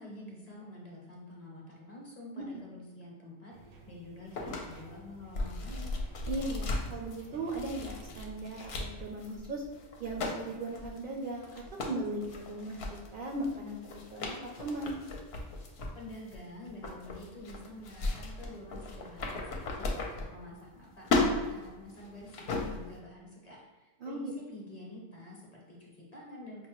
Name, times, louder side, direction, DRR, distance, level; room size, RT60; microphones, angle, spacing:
voice 1, 0.0-5.9 15.9-26.7, left 1 dB, 40° left, -3 dB, 0.8 m, -48 dB
sound 1, 3.5-8.5, right 1 dB, 75° right, 1.0 m, -54 dB
sound 2, 4.3-20.8 21.0-23.0, left 2 dB, 70° left, 0.8 m, -36 dB
voice 2, 6.3-9.6 10.0-12.8 13.1-15.0 24.0-24.3, right 1 dB, 60° right, -1 dB, 0.6 m, -38 dB
5.2 x 2.1 x 3.0 m, 1.2 s
omnidirectional pair, 1.2 m